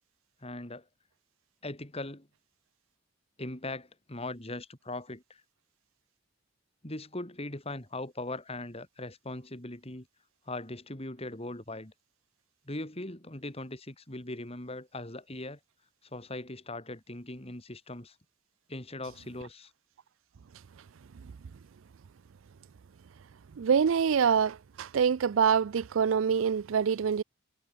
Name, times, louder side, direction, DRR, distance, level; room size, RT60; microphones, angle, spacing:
voice 1, 0.4-0.9 1.6-2.3 3.4-5.4 6.8-10.1 10.4-11.9 12.6-15.6 16.0-18.1 18.7-19.7, left 2 dB, 30° left, 3.4 m, -40 dB
voice 2, 23.6-27.2, right 7 dB, 80° right, 0.4 m, -25 dB
head